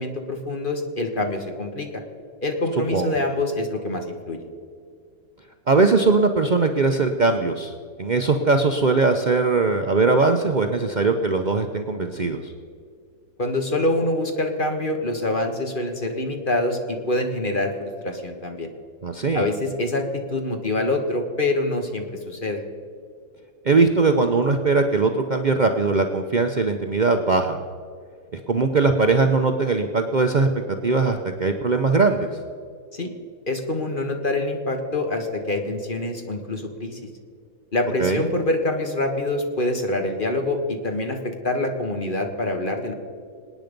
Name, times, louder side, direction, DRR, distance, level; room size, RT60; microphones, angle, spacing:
voice 1, 0.0-2.0 2.4-4.4 13.4-18.7 19.3-22.6 28.5-28.6 32.9-33.1 33.5-37.0 37.7-42.9, left 2 dB, 30° left, 4 dB, 1.6 m, -25 dB
voice 2, 5.7-7.7 8.0-12.5 19.0-19.5 23.6-27.6 28.3-30.5 30.8-32.4 38.0-38.2, right 3 dB, 85° right, 5 dB, 0.4 m, -20 dB
26.5 x 9.3 x 5.2 m, 2.2 s
omnidirectional pair, 2.0 m